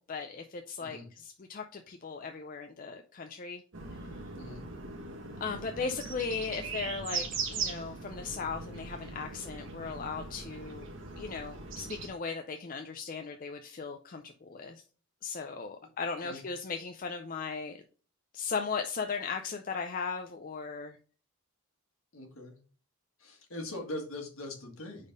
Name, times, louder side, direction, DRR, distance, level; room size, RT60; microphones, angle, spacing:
voice 1, 0.0-3.6 5.4-10.9 11.1-14.8 15.2-17.8 18.3-21.0, left 5 dB, 35° left, 5 dB, 0.4 m, -37 dB
sound 1, 3.7-12.1, right 4 dB, 55° right, 1.2 m, -40 dB
voice 2, 22.1-22.6 23.2-25.1, left 1 dB, 65° left, 2 dB, 1.7 m, -41 dB
5.2 x 4.1 x 5.1 m, 0.39 s
head